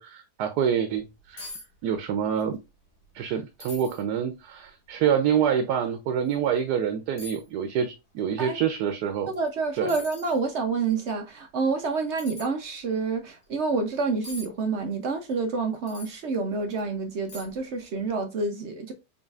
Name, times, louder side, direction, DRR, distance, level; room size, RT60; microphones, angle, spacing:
voice 1, 0.0-1.5 1.8-2.6 3.1-9.3 9.8-9.9, right 8 dB, 90° right, 1.2 m, -26 dB
sound 1, 1.0-1.1 1.4-1.7 1.9-2.5 2.9-3.0 3.6-4.0 4.7-4.8 6.3-6.4 7.2-7.5 9.3-9.5 9.9-10.4 12.2-12.5 14.2-14.5 15.9-16.1 16.7-16.8 17.3-17.7 18.0-18.1, left 1 dB, 75° left, 2.0 m, -42 dB
voice 2, 9.3-18.9, right 4 dB, 55° right, 0.8 m, -28 dB
3.9 x 3.8 x 2.3 m
omnidirectional pair, 1.7 m